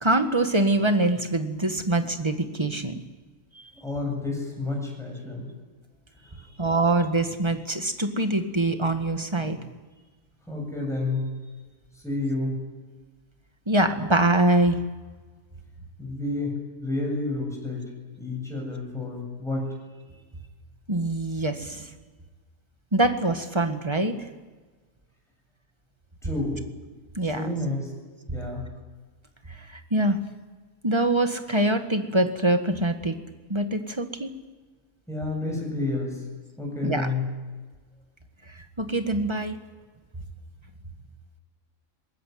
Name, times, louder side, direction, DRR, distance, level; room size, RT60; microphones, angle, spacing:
voice 1, 0.0-2.9 6.6-9.6 13.7-14.8 20.9-21.9 22.9-24.2 27.2-27.5 29.9-30.2 30.8-33.1 33.5-34.3 36.8-37.1 38.8-39.6, right 2 dB, 20° right, 7 dB, 1.9 m, -24 dB
voice 2, 3.8-5.5 6.2-6.7 10.5-11.3 12.0-12.6 16.0-17.9 18.2-19.7 26.2-26.6 27.3-27.9 28.3-28.7 35.1-36.2 36.6-37.3, left 2 dB, ahead, -1 dB, 7.7 m, -30 dB
23.0 x 21.0 x 9.4 m, 1.4 s
omnidirectional pair, 1.4 m